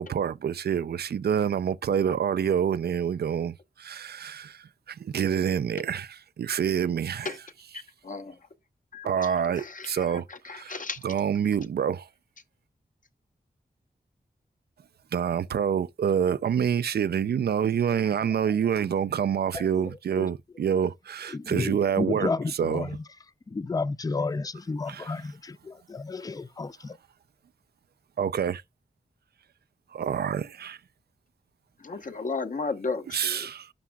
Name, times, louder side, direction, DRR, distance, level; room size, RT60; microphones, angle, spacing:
voice 1, 0.0-7.3 9.0-12.1 15.1-22.3 22.6-22.9 24.9-25.1 28.2-28.6 29.9-30.8 33.1-33.7, right 8 dB, 80° right, 0.4 m, -27 dB
voice 2, 8.9-11.0 31.8-33.5, left 4 dB, 55° left, 0.9 m, -34 dB
voice 3, 19.5-20.3 21.3-23.0 23.5-27.0, left 4 dB, 25° left, 0.4 m, -32 dB
11.5 x 6.1 x 2.3 m
wide cardioid pair, 85°, 16 cm